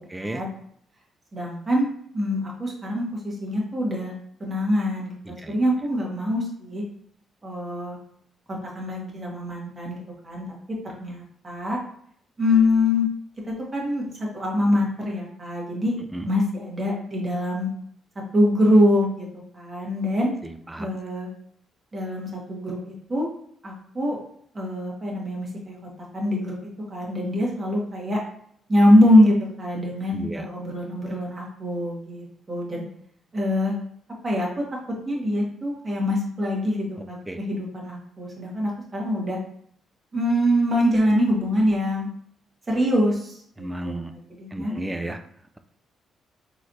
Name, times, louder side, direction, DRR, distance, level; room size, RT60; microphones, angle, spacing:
voice 1, 1.3-1.9 2.1-4.1 4.4-6.8 7.4-8.0 8.5-10.0 10.2-10.4 11.0-11.8 12.4-13.1 13.5-14.1 14.3-16.0 16.2-17.7 18.3-19.3 19.5-20.3 20.8-21.3 21.9-23.3 23.6-24.2 24.5-25.8 26.1-26.6 26.9-28.2 28.7-32.8 33.3-33.7 34.2-34.6 35.0-39.4 40.1-42.1 42.7-44.7, left 1 dB, 30° right, -3 dB, 1.4 m, -24 dB
voice 2, 30.1-30.4 37.3-37.4 43.6-44.1 44.5-45.2, right 1 dB, 10° right, 8 dB, 0.4 m, -32 dB
4.0 x 3.0 x 2.7 m, 0.64 s
cardioid pair, 90°, 0 cm